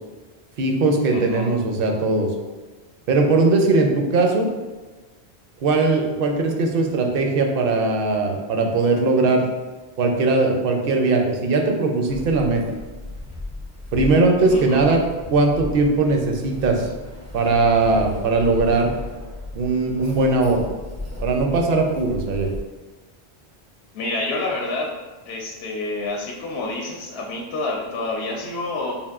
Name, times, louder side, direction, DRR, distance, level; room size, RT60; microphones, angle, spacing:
voice 1, 0.6-2.3 3.1-4.5 5.6-9.5 10.0-12.6 13.9-15.0 15.3-16.9 17.3-18.9 19.5-20.7 21.2-22.5, right 3 dB, 65° right, 2 dB, 0.7 m, -19 dB
voice 2, 1.1-1.5 14.5-14.9 23.9-24.9 25.3-29.0, left 2 dB, 75° left, 0 dB, 0.8 m, -28 dB
Keys jangling, 12.1-22.6, left 2 dB, 20° right, 0.4 m, -35 dB
5.2 x 2.5 x 2.4 m, 1.2 s
omnidirectional pair, 1.1 m